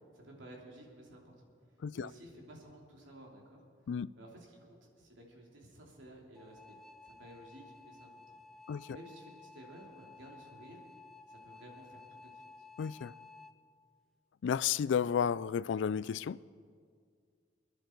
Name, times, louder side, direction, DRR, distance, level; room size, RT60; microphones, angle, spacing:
voice 1, 0.1-3.6 4.1-8.4 8.9-10.8 11.3-12.5, right 1 dB, 90° right, 3.1 m, -54 dB
sound 1, 6.4-13.5, left 4 dB, ahead, 0.5 m, -55 dB
voice 2, 12.8-13.1 14.4-16.4, left 7 dB, 75° left, 0.3 m, -32 dB
26.0 x 10.5 x 4.5 m
head